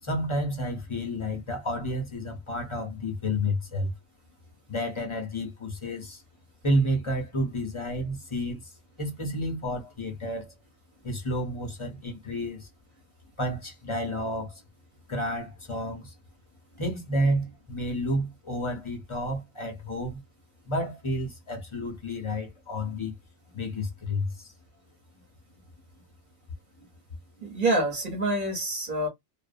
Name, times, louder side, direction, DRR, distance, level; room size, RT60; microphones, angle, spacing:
voice 1, 0.0-3.9 4.7-6.2 6.6-8.7 9.0-10.5 11.0-12.7 13.4-14.6 15.1-16.2 16.7-20.2 20.7-23.2 23.5-24.5 26.8-26.9 27.4-27.5, equal, 30° left, 0.6 m, -30 dB
voice 2, 27.4-29.1, right 1 dB, 40° right, 1.1 m, -26 dB
2.5 x 2.1 x 2.5 m
omnidirectional pair, 1.3 m